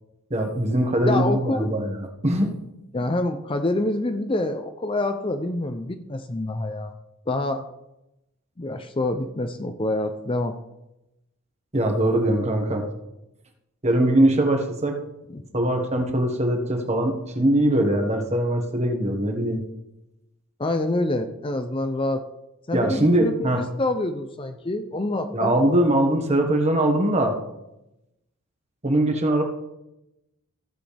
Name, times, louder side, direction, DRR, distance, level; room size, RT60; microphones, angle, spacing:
voice 1, 0.3-2.6 11.7-12.9 13.8-15.0 15.5-19.6 22.7-23.6 25.3-27.3 28.8-29.4, right 1 dB, 30° right, 3 dB, 1.5 m, -21 dB
voice 2, 1.0-1.7 2.9-6.9 7.3-7.7 8.6-10.6 15.3-15.4 20.6-22.2 22.7-25.5, left 2 dB, 25° left, 7 dB, 0.5 m, -26 dB
15.0 x 7.5 x 3.4 m, 0.91 s
head